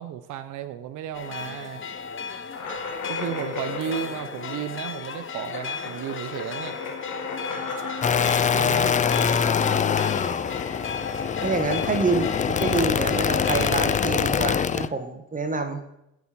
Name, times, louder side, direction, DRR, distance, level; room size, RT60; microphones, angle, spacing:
voice 1, 0.0-1.8 3.1-6.8 8.5-8.9, right 9 dB, 80° right, 9 dB, 0.6 m, -33 dB
sound 1, 1.1-14.1, left 6 dB, 40° left, 0.8 m, -34 dB
sound 2, 2.5-11.9, left 4 dB, 90° left, 1.6 m, -36 dB
sound 3, 8.0-14.9, left 7 dB, 25° left, 0.3 m, -24 dB
voice 2, 11.4-15.8, right 3 dB, 25° right, 6 dB, 1.1 m, -27 dB
9.3 x 4.9 x 5.9 m, 0.84 s
cardioid pair, 90°, 30 cm